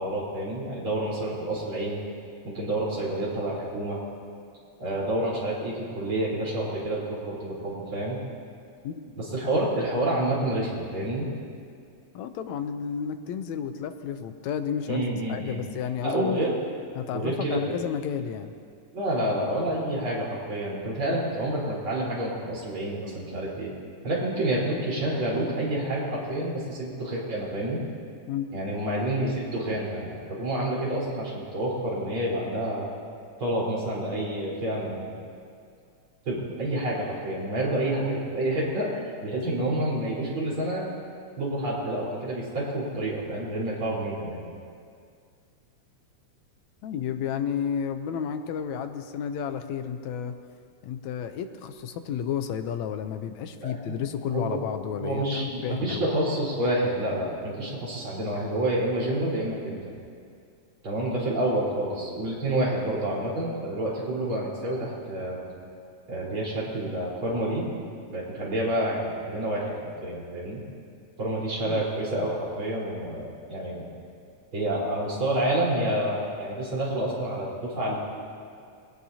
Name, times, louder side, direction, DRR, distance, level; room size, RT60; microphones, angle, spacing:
voice 1, 0.0-2.0 2.4-4.0 4.8-8.2 9.2-11.3 14.9-15.6 16.0-16.5 17.1-17.6 18.9-23.7 24.0-27.8 28.5-32.9 33.4-35.1 36.2-38.9 39.2-40.8 41.4-44.4 53.6-54.0 54.3-54.6 55.0-59.9 60.8-65.4 66.1-67.7 68.1-69.7 70.0-70.6 71.2-73.9 74.5-78.0, right 1 dB, 45° right, -7 dB, 5.0 m, -28 dB
voice 2, 12.1-16.4 17.0-18.5 28.3-28.6 46.8-50.4 50.8-56.1 71.7-71.8, left 8 dB, 75° left, 8 dB, 2.0 m, -32 dB
21.0 x 17.5 x 2.8 m, 2.3 s
omnidirectional pair, 3.4 m